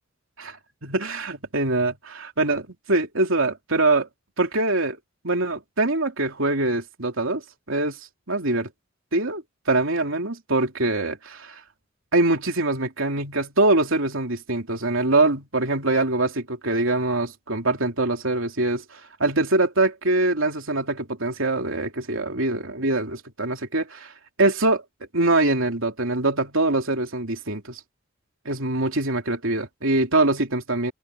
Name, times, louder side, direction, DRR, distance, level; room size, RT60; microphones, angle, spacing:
voice 1, 0.8-4.1 4.4-5.0 5.2-7.4 7.7-8.0 8.3-8.7 9.1-11.6 12.1-24.1 24.4-24.8 25.1-27.8 28.4-30.9, right 2 dB, 75° right, 3.1 m, -23 dB
head